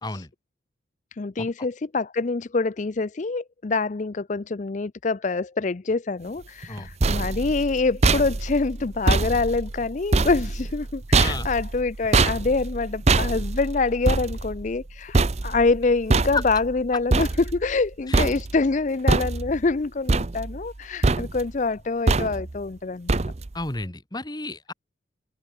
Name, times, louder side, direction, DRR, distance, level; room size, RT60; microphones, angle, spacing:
voice 1, 1.1-23.2, left 3 dB, 40° left, 0.5 m, -25 dB
sound 1, 6.6-17.9 18.1-18.7 19.1-19.7 20.1-20.8 21.0-21.6 22.1-22.6 23.1-23.6, right 3 dB, 35° right, 0.6 m, -24 dB
voice 2, 11.2-11.5 16.3-16.4 18.1-18.2 23.5-24.7, left 3 dB, 20° left, 1.5 m, -31 dB
open air
head